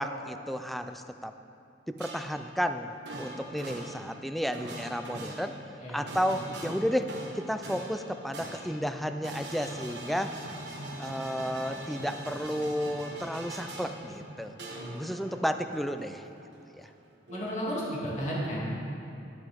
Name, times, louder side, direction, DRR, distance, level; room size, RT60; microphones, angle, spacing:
voice 1, 0.0-1.3 1.9-5.5 5.9-10.4 11.0-14.5 14.9-16.3 16.8-16.9, equal, ahead, 8 dB, 0.3 m, -32 dB
sound 1, 2.0-2.5 2.9-16.9 17.3-18.0, right 1 dB, 70° right, 1.4 m, -42 dB
voice 2, 17.3-18.8, equal, 40° left, -7 dB, 2.6 m, -33 dB
11.0 x 11.0 x 3.5 m, 2.7 s
head